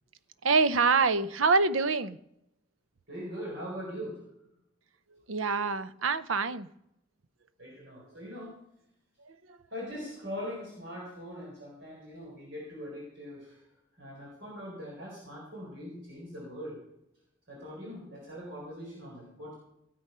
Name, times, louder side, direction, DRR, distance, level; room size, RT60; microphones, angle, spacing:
voice 1, 0.4-2.2 5.3-6.7 9.3-9.6, right 4 dB, 85° right, 14 dB, 0.7 m, -26 dB
voice 2, 3.1-4.2 7.6-8.6 9.7-13.6 14.0-16.8 17.5-19.5, equal, 65° right, -4 dB, 4.4 m, -41 dB
17.0 x 7.7 x 5.6 m, 0.82 s
head